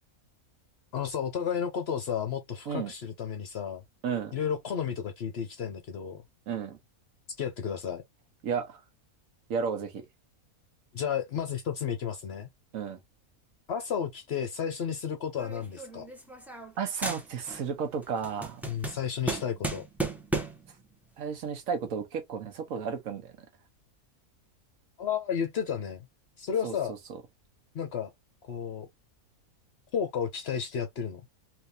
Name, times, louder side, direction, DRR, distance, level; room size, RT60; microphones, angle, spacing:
voice 1, 0.9-3.8 4.3-6.2 7.4-8.0 10.9-12.5 13.7-16.1 18.7-19.9 25.0-26.1 26.4-26.9 27.7-28.1 28.5-28.9 29.9-31.2, left 7 dB, 60° left, 0.8 m, -32 dB
voice 2, 4.0-4.3 6.5-6.8 8.4-8.8 9.5-10.0 12.7-13.0 16.8-18.6 21.2-23.3 26.6-26.7, right 6 dB, 70° right, 1.3 m, -33 dB
sound 1, 15.4-16.8 17.0-17.7 18.0-20.7, right 2 dB, ahead, 0.3 m, -35 dB
3.5 x 2.9 x 2.6 m
omnidirectional pair, 1.5 m